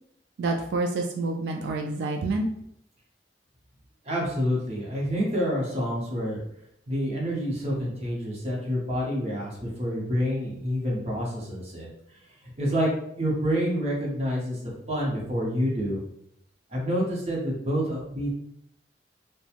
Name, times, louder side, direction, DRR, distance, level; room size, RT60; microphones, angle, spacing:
voice 1, 0.4-2.5, right 2 dB, 75° right, 2 dB, 0.3 m, -28 dB
voice 2, 4.0-6.4 6.9-11.9 12.6-12.9 13.2-14.6 14.9-16.0 16.7-18.3, equal, 35° right, -4 dB, 0.8 m, -28 dB
2.9 x 2.2 x 2.5 m, 0.74 s
head